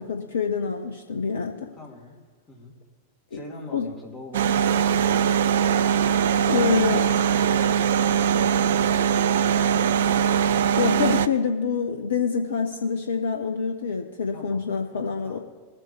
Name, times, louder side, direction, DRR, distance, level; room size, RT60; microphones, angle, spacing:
voice 1, 0.0-1.7 3.3-3.4 3.7-3.9 6.3-7.0 10.8-15.4, left 6 dB, 65° left, 4 dB, 0.7 m, -26 dB
voice 2, 1.8-2.2 2.5-2.7 3.3-5.5 6.5-10.4 14.3-15.4, left 2 dB, 20° left, -1 dB, 2.5 m, -43 dB
sound 1, 4.3-11.3, right 8 dB, 60° right, 0.4 m, -21 dB
21.5 x 7.7 x 3.2 m, 1.3 s
figure-of-eight pair, 90°, 0 cm